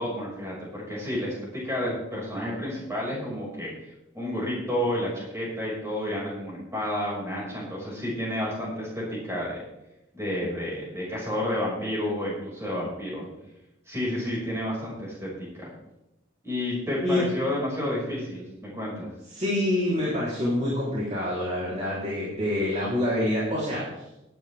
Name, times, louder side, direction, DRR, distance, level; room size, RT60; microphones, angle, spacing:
voice 1, 0.0-3.9 4.1-9.6 10.1-13.3 13.9-15.7 16.4-19.1, left 1 dB, 15° right, -5 dB, 6.0 m, -30 dB
voice 2, 19.3-23.8, left 1 dB, 35° right, -8 dB, 3.8 m, -26 dB
17.5 x 11.0 x 3.6 m, 0.92 s
head